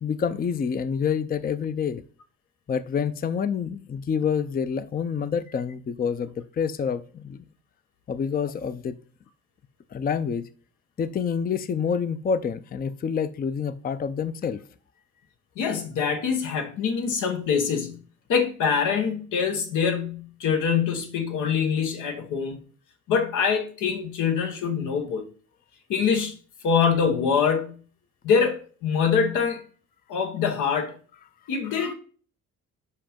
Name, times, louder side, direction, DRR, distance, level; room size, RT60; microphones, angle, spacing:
voice 1, 0.0-2.0 2.7-7.4 8.1-9.0 9.9-10.5 11.0-14.6, left 6 dB, 30° left, 0.5 m, -27 dB
voice 2, 15.6-18.0 18.3-22.6 23.1-25.2 25.9-26.3 26.6-27.7 28.2-29.6 30.1-30.9 31.5-31.9, left 6 dB, 85° left, 1.4 m, -24 dB
5.6 x 5.2 x 5.1 m
cardioid pair, 90°, 30 cm